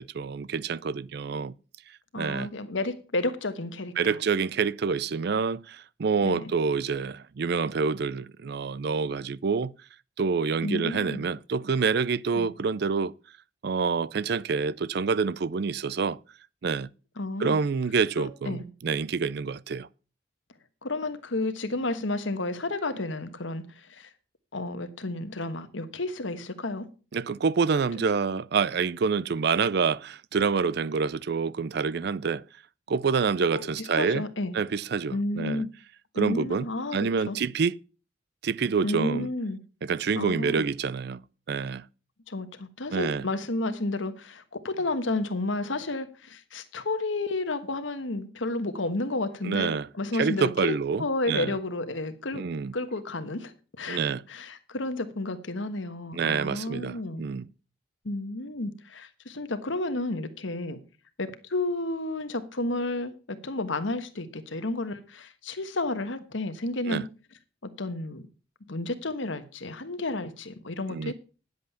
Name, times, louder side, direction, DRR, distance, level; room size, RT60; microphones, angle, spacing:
voice 1, 0.0-1.5 2.2-2.5 4.0-9.7 10.2-13.1 13.6-16.2 16.6-16.9 17.4-19.9 27.1-32.4 32.9-34.2 34.5-35.6 36.1-36.7 36.9-37.8 38.4-39.3 39.8-41.2 41.5-41.8 42.9-43.2 49.4-49.9 50.1-51.6 52.3-52.7 53.9-54.2 56.1-57.5 66.9-67.0 70.9-71.1, right 5 dB, 55° right, 0.4 m, -27 dB
voice 2, 2.1-4.2 6.2-6.5 10.6-11.2 12.3-12.5 17.2-17.6 18.2-18.6 20.8-24.1 24.5-26.9 33.4-33.7 34.0-34.6 35.1-35.7 36.1-37.4 38.8-39.6 40.1-40.6 42.3-50.5 51.0-52.4 52.7-54.0 54.3-57.2 58.0-60.8 61.2-67.1 67.6-68.2 68.7-71.1, left 2 dB, 75° left, 1.3 m, -31 dB
10.5 x 7.8 x 5.6 m
head